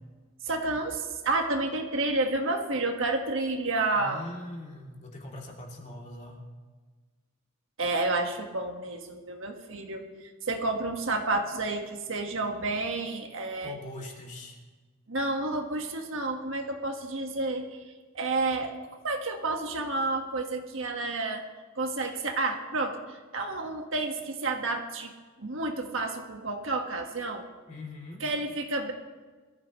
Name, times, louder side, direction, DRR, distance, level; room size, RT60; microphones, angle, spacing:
voice 1, 0.4-4.2 7.8-13.8 15.1-17.8 18.1-18.7 19.0-21.4 21.7-25.1 25.4-27.4 28.2-28.9, right 2 dB, 65° right, 3 dB, 1.6 m, -30 dB
voice 2, 3.9-6.4 13.6-14.6 27.7-28.2, left 1 dB, 35° left, -1 dB, 2.8 m, -42 dB
22.5 x 14.5 x 3.2 m, 1.3 s
head